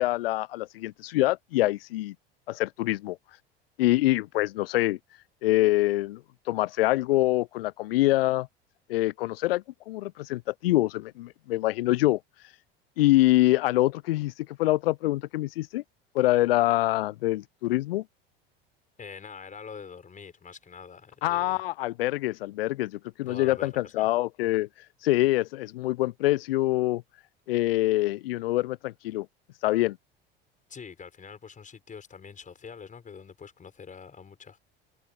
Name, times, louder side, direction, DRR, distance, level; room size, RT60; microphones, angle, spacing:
voice 1, 0.0-2.1 2.5-3.2 3.8-5.0 5.4-6.2 6.5-8.5 8.9-12.2 13.0-15.8 16.1-18.0 21.2-24.7 25.0-27.0 27.5-29.3 29.6-30.0, left 17 dB, 70° left, 0.6 m, -25 dB
voice 2, 19.0-21.6 23.3-24.1 30.7-34.6, left 6 dB, 25° left, 6.1 m, -45 dB
figure-of-eight pair, 75°, 30 cm